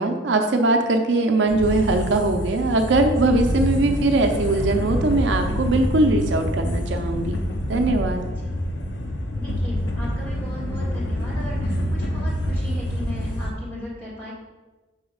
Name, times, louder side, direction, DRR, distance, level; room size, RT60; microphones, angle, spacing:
voice 1, 0.0-7.3 7.7-8.3, right 2 dB, 65° right, 5 dB, 0.5 m, -21 dB
sound 1, 1.5-13.5, equal, 65° left, 0.7 m, -26 dB
voice 2, 9.3-14.3, left 1 dB, 10° left, -7 dB, 2.0 m, -37 dB
5.5 x 3.9 x 5.0 m, 1.2 s
head